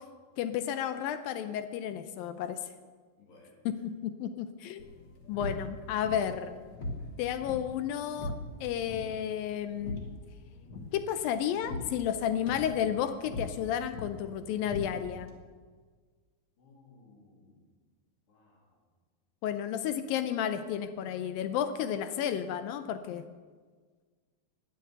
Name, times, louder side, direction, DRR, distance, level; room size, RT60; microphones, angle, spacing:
voice 1, 0.4-2.6 3.7-4.9 5.3-6.5 7.2-8.3 8.6-10.0 10.9-15.3 19.4-23.2, left 9 dB, 85° left, 10 dB, 2.3 m, -32 dB
voice 2, 3.2-3.6 5.4-5.5 6.8-7.1 16.6-17.7 18.3-18.8, left 3 dB, 65° left, -3 dB, 4.9 m, -60 dB
sound 1, 4.8-15.4, left 2 dB, 50° left, 1.4 m, -42 dB
19.5 x 6.7 x 7.9 m, 1.5 s
omnidirectional pair, 4.3 m